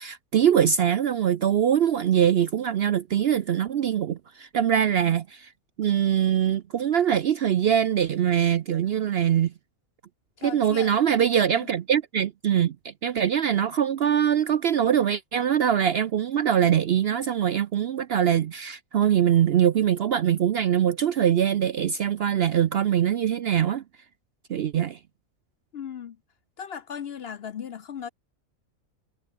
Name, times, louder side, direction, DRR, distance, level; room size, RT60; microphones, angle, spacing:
voice 1, 0.0-5.5 5.8-9.5 10.4-23.8 24.5-25.0, right 9 dB, 60° right, 0.7 m, -23 dB
voice 2, 10.4-10.9 11.5-11.7 25.7-26.2 26.6-28.1, left 8 dB, 55° left, 0.8 m, -37 dB
omnidirectional pair, 1.5 m